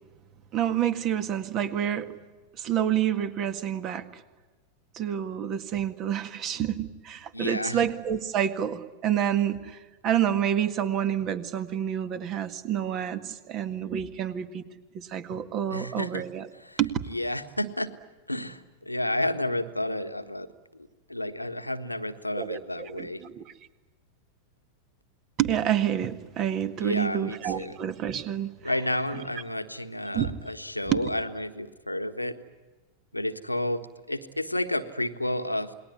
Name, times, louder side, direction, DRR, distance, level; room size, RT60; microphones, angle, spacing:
voice 1, 0.5-2.1 2.6-4.2 5.0-9.8 10.0-14.6 15.1-16.5 16.8-16.9 22.4-23.4 25.4-29.3 30.1-30.3 30.9-31.1, right 10 dB, 35° right, 10 dB, 1.9 m, -28 dB
voice 2, 7.3-7.8 15.7-16.2 16.5-17.9 18.3-20.5 20.7-23.2 26.8-27.8 28.6-32.3 33.1-35.7, left 1 dB, 85° left, 7 dB, 1.5 m, -31 dB
28.5 x 21.0 x 9.7 m, 1.3 s
figure-of-eight pair, 90°, 0 cm